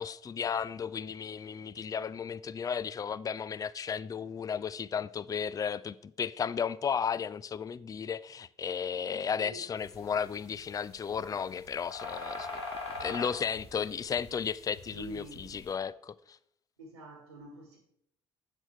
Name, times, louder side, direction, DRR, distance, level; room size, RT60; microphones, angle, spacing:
voice 1, 0.0-12.6 13.0-16.4, left 7 dB, 25° left, 0.4 m, -34 dB
voice 2, 9.1-9.7 14.9-15.4 16.8-17.8, right 3 dB, 90° right, 1.4 m, -46 dB
sound 1, 9.8-15.7, left 3 dB, 85° left, 1.8 m, -42 dB
7.8 x 7.8 x 4.4 m
figure-of-eight pair, 50°, 14 cm